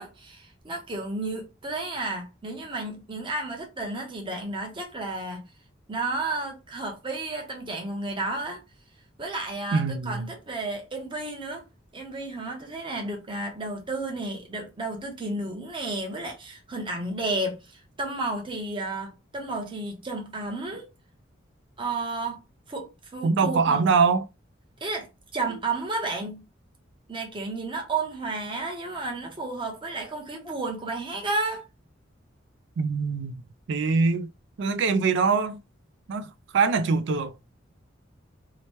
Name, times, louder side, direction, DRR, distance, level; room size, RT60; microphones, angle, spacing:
voice 1, 0.0-5.4 5.9-8.6 9.2-11.7 11.9-20.9 21.8-22.4 22.7-23.9 24.8-26.4 27.1-31.6, right 2 dB, 25° right, 0.8 m, -32 dB
voice 2, 9.7-10.2 23.2-24.2 32.8-33.4 33.7-34.3 34.6-35.6 36.1-37.3, right 4 dB, 65° right, 0.4 m, -23 dB
2.9 x 2.1 x 3.0 m
head